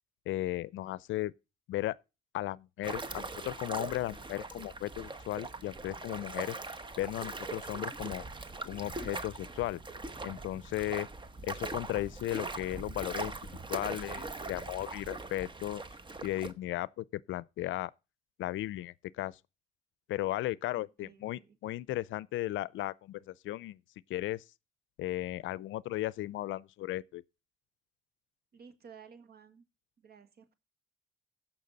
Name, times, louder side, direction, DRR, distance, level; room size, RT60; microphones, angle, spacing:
voice 1, 0.3-1.3 1.7-2.0 2.3-8.2 8.7-9.8 10.2-11.1 11.4-13.3 13.7-15.8 16.2-17.9 18.4-19.4 20.1-23.8 24.1-24.4 25.0-27.2, left 15 dB, 80° left, 0.5 m, -36 dB
sound 1, 2.8-16.5, right 3 dB, 25° right, 1.1 m, -41 dB
voice 2, 20.8-21.6 28.5-29.7 30.0-30.5, right 6 dB, 55° right, 1.7 m, -55 dB
15.5 x 5.9 x 4.0 m
cardioid pair, 90°, 20 cm